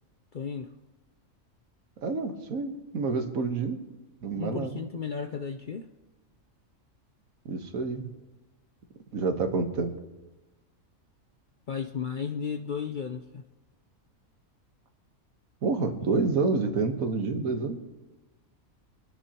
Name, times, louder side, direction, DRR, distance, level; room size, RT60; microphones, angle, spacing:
voice 1, 0.3-0.7 4.4-5.9 11.7-13.4, left 6 dB, 60° left, 7 dB, 0.5 m, -34 dB
voice 2, 2.0-3.8 4.2-4.8 7.4-8.1 9.1-9.9 15.6-17.8, right 4 dB, 85° right, 5 dB, 1.7 m, -28 dB
26.5 x 10.0 x 2.9 m, 1.1 s
omnidirectional pair, 1.4 m